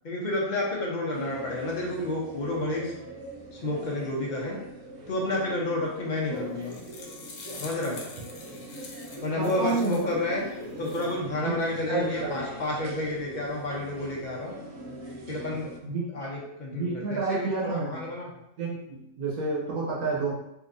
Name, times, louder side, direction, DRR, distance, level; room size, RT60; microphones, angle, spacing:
voice 1, 0.0-2.9 3.6-4.6 5.1-6.8 7.6-8.0 9.2-10.4 10.8-14.5 15.3-15.7 16.1-18.3, left 2 dB, 45° left, -3 dB, 0.7 m, -30 dB
sound 1, 1.1-15.8, right 1 dB, 60° right, 0.8 m, -42 dB
sound 2, 6.4-10.1 10.6-11.1, left 4 dB, 85° left, 1.1 m, -45 dB
voice 2, 9.3-10.1 11.4-11.5 11.9-12.5 15.8-16.1 16.7-18.1 18.6-20.3, right 3 dB, 80° right, -4 dB, 1.2 m, -29 dB
3.7 x 2.8 x 2.5 m, 0.85 s
omnidirectional pair, 1.5 m